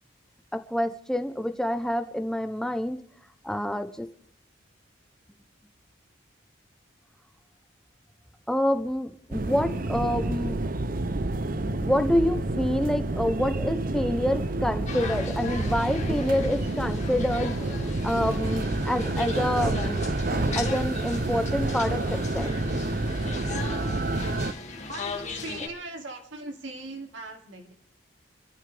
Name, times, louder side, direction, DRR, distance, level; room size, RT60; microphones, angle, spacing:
voice 1, 0.5-3.0 3.4-4.1 8.5-10.6 11.5-17.5 18.0-20.1 20.6-22.5, left 1 dB, 5° left, 9 dB, 0.8 m, -27 dB
sound 1, 9.3-24.5, right 2 dB, 45° right, 0.7 m, -29 dB
sound 2, 14.8-25.7, left 4 dB, 35° left, 2.3 m, -38 dB
voice 2, 24.9-27.7, right 2 dB, 70° right, 2 dB, 2.9 m, -39 dB
26.5 x 13.0 x 3.5 m, 0.64 s
head